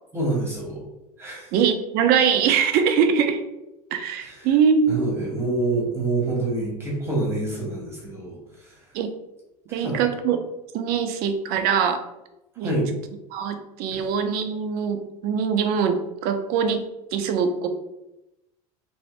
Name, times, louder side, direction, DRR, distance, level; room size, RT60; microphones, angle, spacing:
voice 1, 0.1-0.8 1.2-1.5 4.2-4.5 4.9-8.7 9.7-10.0 12.6-12.9 13.9-14.0, right 2 dB, 15° right, -3 dB, 1.4 m, -27 dB
voice 2, 1.5-3.4 3.9-4.9 8.9-9.1 9.7-10.4 10.7-12.0 12.6-12.7 13.3-16.8 17.1-17.7, right 7 dB, 55° right, 8 dB, 0.5 m, -22 dB
3.0 x 2.6 x 3.1 m, 0.93 s
supercardioid pair, 100°, 19 cm